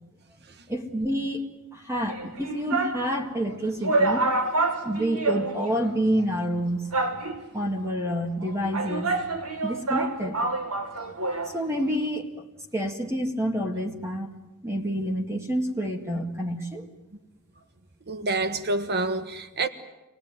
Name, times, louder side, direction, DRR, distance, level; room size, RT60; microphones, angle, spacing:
voice 1, 0.7-1.5 1.7-4.3 4.8-6.9 7.5-9.1 9.6-10.4 11.5-12.3 12.7-14.3 14.6-16.9, equal, 10° right, 1.9 m, -28 dB
sound 1, 2.1-3.1 3.5-3.6 3.8-5.9 6.2-6.3 6.9-7.6 8.4-11.6 11.8-11.9, right 3 dB, 85° right, 2.2 m, -27 dB
voice 2, 18.1-19.7, right 2 dB, 50° right, 1.5 m, -27 dB
26.0 x 19.0 x 9.5 m
head